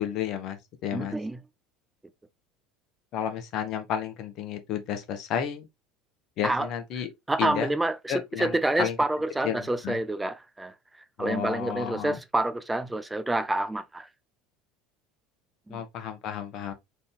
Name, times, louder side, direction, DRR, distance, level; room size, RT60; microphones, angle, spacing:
voice 1, 0.0-1.2 3.1-5.7 6.4-7.1 7.4-7.7 8.1-9.0 9.4-10.0 11.2-12.2 15.7-16.7, left 9 dB, 45° left, 1.1 m, -32 dB
voice 2, 0.9-1.4 6.4-6.7 7.3-10.7 11.2-14.1 15.7-15.8, right 1 dB, 10° right, 0.6 m, -28 dB
4.1 x 3.5 x 3.5 m
figure-of-eight pair, 70°, 0 cm